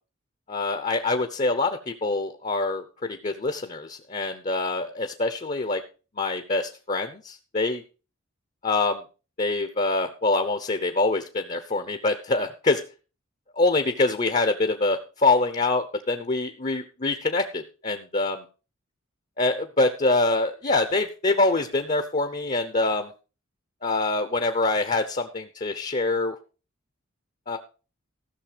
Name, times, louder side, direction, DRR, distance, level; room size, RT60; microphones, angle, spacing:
voice 1, 0.5-5.8 6.2-7.8 8.6-9.0 9.4-12.8 13.5-18.4 19.4-23.1 23.8-26.3 27.5-27.6, left 2 dB, 35° left, 8 dB, 0.8 m, -25 dB
15.0 x 6.6 x 5.1 m, 0.34 s
head